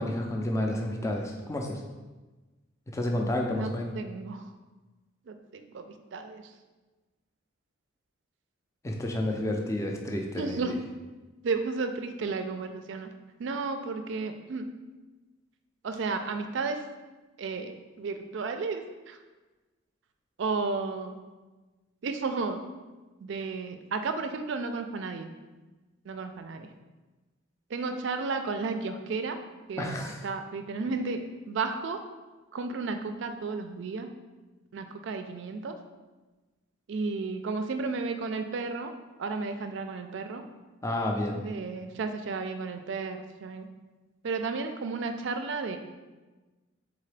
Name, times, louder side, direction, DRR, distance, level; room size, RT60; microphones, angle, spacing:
voice 1, 0.0-1.8 2.9-4.0 8.8-10.7 29.8-30.2 40.8-41.4, left 1 dB, 15° left, 1 dB, 0.4 m, -30 dB
voice 2, 4.0-4.5 5.3-6.4 10.3-10.8 11.4-13.1 13.4-14.7 15.8-16.8 17.4-19.2 20.4-21.2 22.0-22.6 23.2-25.3 26.1-26.7 27.7-29.4 29.7-29.9 30.2-32.0 32.5-34.1 34.7-35.7 36.9-38.9 39.2-40.4 41.4-43.7 44.2-45.8, right 4 dB, 60° right, 7 dB, 0.4 m, -33 dB
3.7 x 3.7 x 3.3 m, 1.2 s
head